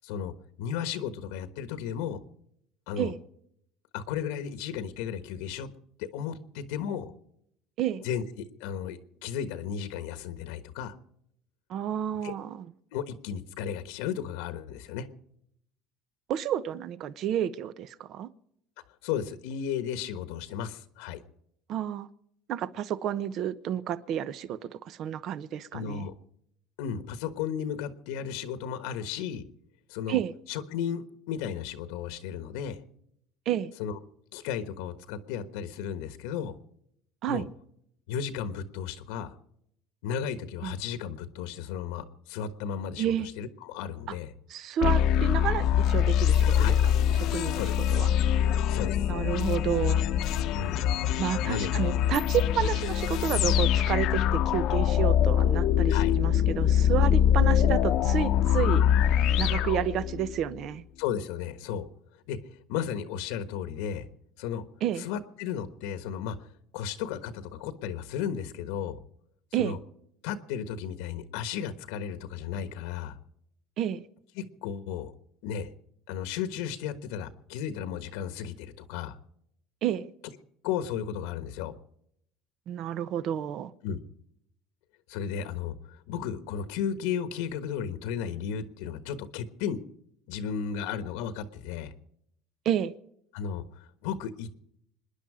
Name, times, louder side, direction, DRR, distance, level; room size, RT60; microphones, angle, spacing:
voice 1, 0.6-2.2 2.9-3.1 3.9-5.7 6.0-7.1 8.0-8.2 8.6-11.0 12.2-12.3 12.9-15.1 19.0-21.2 25.7-26.1 26.8-29.4 29.9-30.2 30.5-32.8 33.8-34.0 34.3-36.5 37.3-37.4 38.1-39.3 40.0-44.3 46.5-46.8 47.5-47.7 48.7-49.0 50.5-50.8 51.4-51.7 55.9-56.1 61.0-61.9 62.3-64.0 64.4-64.6 65.0-66.5 66.7-69.0 69.6-69.8 70.2-73.2 74.3-75.1 75.4-75.7 76.1-79.2 80.6-81.7 83.8-84.0 85.1-89.8 90.3-91.9 93.3-94.6, left 8 dB, 80° left, 1.3 m, -34 dB
voice 2, 11.7-12.7 16.3-18.3 21.7-22.1 22.5-26.1 30.1-30.3 33.5-33.7 37.2-37.5 40.6-40.8 43.0-43.3 44.5-46.7 47.2-47.6 47.9-48.1 49.1-50.0 51.2-58.8 59.4-60.8 64.8-65.1 69.5-69.8 73.8-74.0 79.8-80.1 82.7-83.7 92.6-92.9, right 10 dB, 50° right, 0.9 m, -30 dB
sound 1, 44.8-60.4, left 9 dB, 55° left, 0.9 m, -24 dB
26.5 x 10.5 x 5.0 m
cardioid pair, 135°, 0 cm